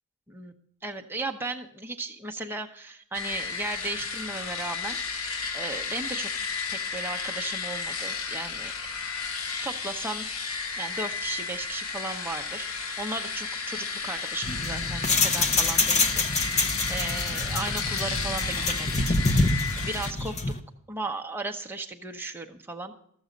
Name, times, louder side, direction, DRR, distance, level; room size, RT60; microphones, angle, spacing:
voice 1, 0.8-6.3 6.7-8.7 9.6-10.3 10.7-20.5 20.9-22.9, right 2 dB, 10° right, 3 dB, 0.9 m, -36 dB
sound 1, 3.1-20.1, left 5 dB, 85° left, 1.0 m, -33 dB
sound 2, 14.4-20.6, left 3 dB, 30° left, 0.8 m, -26 dB
13.5 x 7.1 x 5.2 m, 0.70 s
head